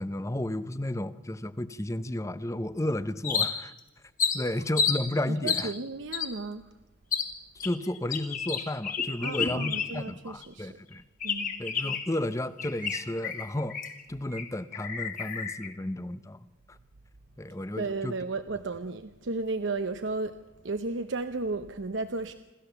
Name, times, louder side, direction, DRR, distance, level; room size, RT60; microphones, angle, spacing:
voice 1, 0.0-3.7 4.3-5.7 7.6-11.0 11.6-13.8 14.1-16.8 17.4-18.1, left 1 dB, 15° left, 0.6 m, -33 dB
sound 1, 3.2-3.8 4.2-5.0 5.5-5.7 6.1-6.3 7.1-7.3 7.6-10.1 10.4-10.5 11.2-12.1 12.6-14.0 14.3-14.4 14.7-15.7, left 6 dB, 40° left, 2.2 m, -30 dB
voice 2, 5.3-6.7 9.2-10.8 11.2-11.6 17.8-20.4 20.6-22.3, right 3 dB, 65° right, 0.8 m, -34 dB
27.0 x 14.0 x 6.9 m
head